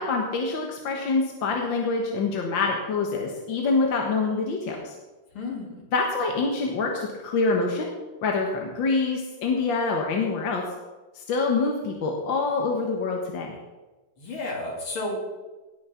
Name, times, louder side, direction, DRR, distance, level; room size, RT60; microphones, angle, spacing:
voice 1, 0.0-5.0 5.9-7.9 8.2-10.6 11.2-13.6, left 3 dB, 65° left, 1 dB, 2.1 m, -26 dB
voice 2, 5.3-5.8 14.2-15.2, left 2 dB, 80° left, -1 dB, 3.6 m, -32 dB
18.0 x 6.4 x 5.8 m, 1.2 s
omnidirectional pair, 2.3 m